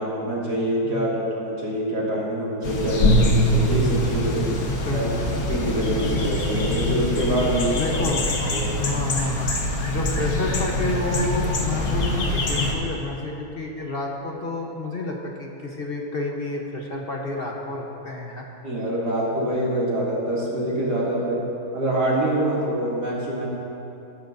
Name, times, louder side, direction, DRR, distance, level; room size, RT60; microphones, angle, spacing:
voice 1, 0.0-4.5 4.9-5.1 5.5-8.0 8.5-8.7 9.9-10.0 18.6-21.4 21.7-23.5, right 1 dB, 85° right, -6 dB, 3.1 m, -25 dB
sound 1, 2.6-12.7, left 1 dB, 70° left, 1.6 m, -23 dB
voice 2, 4.8-5.3 7.7-8.2 8.8-9.5 9.8-18.4, left 2 dB, 40° left, 0 dB, 1.1 m, -30 dB
19.5 x 10.0 x 2.7 m, 2.8 s
omnidirectional pair, 1.7 m